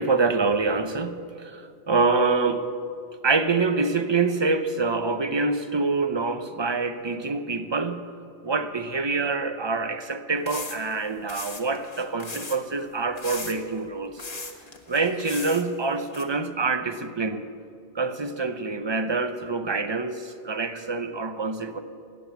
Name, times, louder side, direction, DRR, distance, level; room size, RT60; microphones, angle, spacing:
voice 1, 0.0-2.7 3.2-8.0 8.4-14.2 14.9-17.4 17.9-21.8, right 4 dB, 30° right, 10 dB, 0.6 m, -26 dB
sound 1, 10.5-11.0 11.3-12.6 13.2-13.8 14.2-15.6 16.1-16.2, left 3 dB, 35° left, 1.3 m, -37 dB
17.0 x 9.8 x 8.1 m, 2.5 s
omnidirectional pair, 1.2 m